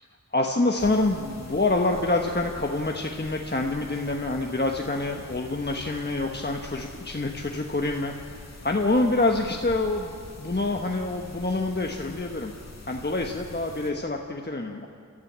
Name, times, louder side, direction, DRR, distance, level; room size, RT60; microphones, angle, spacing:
voice 1, 0.3-8.1 8.6-10.1 10.4-12.5 12.9-14.9, left 2 dB, 35° left, 2 dB, 1.3 m, -26 dB
sound 1, 0.8-13.9, left 2 dB, 60° left, 2.2 m, -44 dB
29.5 x 13.5 x 7.5 m, 2.4 s
wide cardioid pair, 60°, 29 cm